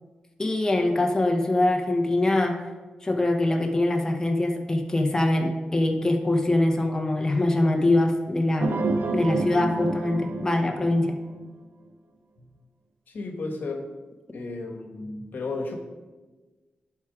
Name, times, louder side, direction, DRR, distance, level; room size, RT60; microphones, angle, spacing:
voice 1, 0.4-2.6 3.0-8.8 9.1-11.2, left 1 dB, 20° left, 3 dB, 0.8 m, -23 dB
sound 1, 8.6-11.4, right 3 dB, 90° right, 0.7 m, -29 dB
voice 2, 13.1-13.9 14.3-15.7, left 3 dB, 75° left, 4 dB, 1.1 m, -33 dB
11.0 x 4.5 x 4.9 m, 1.3 s
wide cardioid pair, 140°, 3 cm